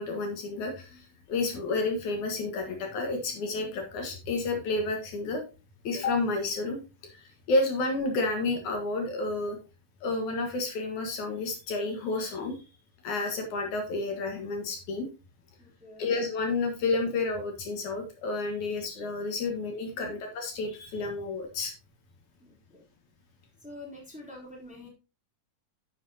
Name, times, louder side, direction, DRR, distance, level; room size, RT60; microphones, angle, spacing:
voice 1, 0.0-5.4 5.8-6.8 7.1-9.6 10.0-12.6 13.0-15.1 16.0-21.7, left 3 dB, 70° left, 3 dB, 2.9 m, -30 dB
voice 2, 15.6-16.1 19.9-20.1 22.4-22.8 23.6-24.9, left 1 dB, ahead, -3 dB, 3.0 m, -46 dB
10.5 x 7.5 x 2.8 m, 0.29 s
omnidirectional pair, 3.7 m